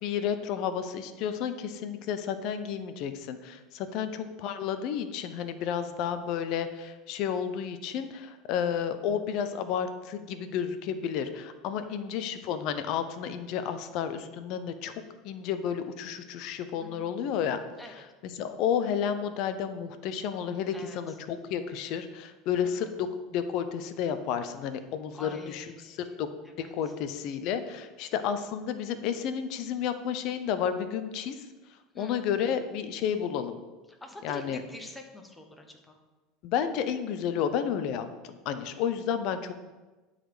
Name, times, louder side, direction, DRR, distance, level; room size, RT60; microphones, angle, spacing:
voice 1, 0.0-14.9 15.2-17.6 18.2-26.3 26.6-31.4 31.9-33.6 34.2-34.6 36.4-39.5, left 8 dB, 60° left, 10 dB, 0.7 m, -31 dB
voice 2, 20.7-21.2 22.6-22.9 25.1-26.2 26.4-26.7 31.9-32.2 33.9-36.0, left 1 dB, 10° left, 4 dB, 1.2 m, -47 dB
11.0 x 4.2 x 5.0 m, 1.2 s
supercardioid pair, 105°, 0 cm